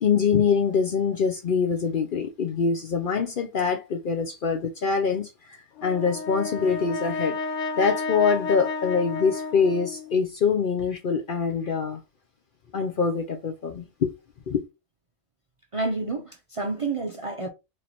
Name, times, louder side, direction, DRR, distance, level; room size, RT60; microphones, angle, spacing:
voice 1, 0.0-7.4 7.8-12.0 12.7-14.1 14.5-14.6, left 5 dB, 55° left, 0.6 m, -24 dB
Brass instrument, 5.8-10.2, left 3 dB, 70° left, 1.0 m, -31 dB
voice 2, 15.7-17.5, right 3 dB, 40° right, 0.5 m, -29 dB
3.1 x 2.9 x 4.0 m
omnidirectional pair, 1.3 m